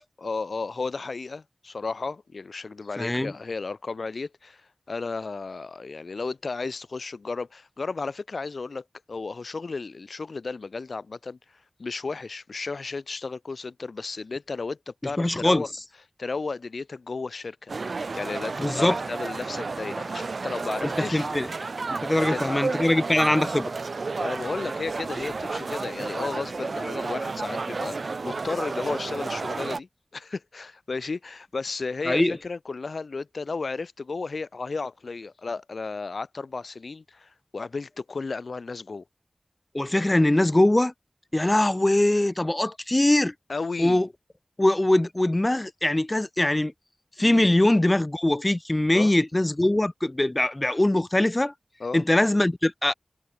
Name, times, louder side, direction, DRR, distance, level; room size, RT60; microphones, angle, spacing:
voice 1, 0.2-15.7 16.2-17.7 18.1-21.3 22.1-22.6 24.2-39.0 43.5-44.0 47.2-47.4 48.9-49.1 51.8-52.0, left 4 dB, 90° left, 1.4 m, -34 dB
voice 2, 3.0-3.3 15.2-15.7 18.6-19.0 20.8-21.5 22.0-23.7 32.1-32.4 39.7-40.9 41.3-43.3 43.8-44.1 44.6-46.7 47.2-51.5 51.9-52.9, left 1 dB, 25° left, 0.5 m, -22 dB
sound 1, 17.7-29.8, right 4 dB, 85° right, 0.8 m, -31 dB
wide cardioid pair, 70°, 0 cm